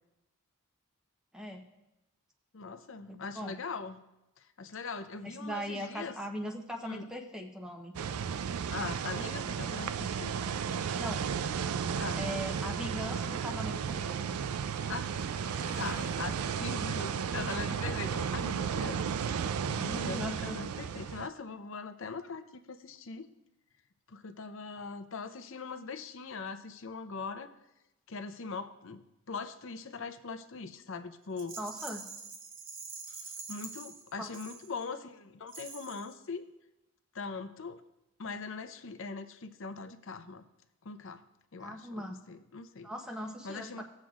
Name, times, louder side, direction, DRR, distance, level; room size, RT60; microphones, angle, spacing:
voice 1, 2.5-4.0 4.4-6.1 6.8-7.1 8.7-10.3 12.0-12.2 14.9-15.1 15.7-23.3 24.1-27.5 28.1-31.6 33.1-36.5 37.1-37.8 38.2-40.4 40.8-41.2 41.5-42.9 43.4-43.8, left 4 dB, 60° left, 10 dB, 0.6 m, -41 dB
voice 2, 3.1-3.6 5.2-8.0 11.0-11.2 12.1-14.3 20.0-20.6 31.6-32.0 34.2-34.3 41.6-42.2 42.8-43.8, equal, 5° right, 2 dB, 0.8 m, -39 dB
sound 1, 7.9-21.3, right 7 dB, 75° right, 0.4 m, -34 dB
Car passing by, 12.8-18.6, right 3 dB, 60° right, 1.4 m, -51 dB
Rattle, 31.4-35.0 35.5-36.2, right 4 dB, 40° right, 1.0 m, -45 dB
19.0 x 7.5 x 2.4 m, 0.94 s
head